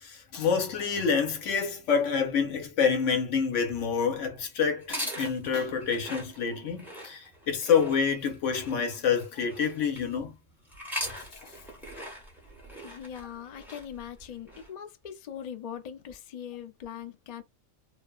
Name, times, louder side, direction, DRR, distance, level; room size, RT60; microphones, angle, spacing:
voice 1, 0.0-10.3, left 6 dB, 70° left, 1.1 m, -27 dB
sound 1, 4.8-10.2 10.7-14.7, equal, ahead, 0.8 m, -41 dB
voice 2, 12.8-17.4, left 9 dB, 85° left, 0.3 m, -41 dB
3.2 x 2.0 x 2.3 m
omnidirectional pair, 1.3 m